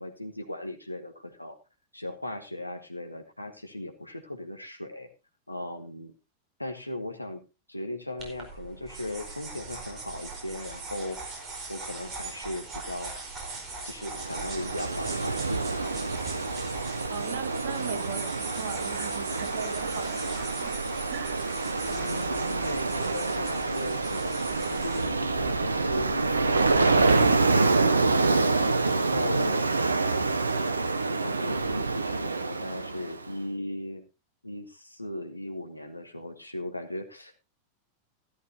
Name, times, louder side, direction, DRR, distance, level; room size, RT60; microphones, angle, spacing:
voice 1, 0.0-1.6 1.9-5.1 5.5-6.1 6.6-7.4 7.7-11.2 11.5-13.1 13.8-15.9 21.9-29.7 31.2-34.0 34.4-37.3, left 1 dB, 85° left, 7 dB, 1.6 m, -37 dB
sound 1, 8.2-27.1, right 3 dB, 30° right, 4.7 m, -40 dB
Ocean, 14.1-33.2, right 3 dB, 80° right, 0.8 m, -27 dB
voice 2, 17.1-20.8 21.1-21.4, right 8 dB, 55° right, 6 dB, 2.2 m, -39 dB
14.0 x 12.5 x 2.9 m, 0.27 s
figure-of-eight pair, 90°, 0 cm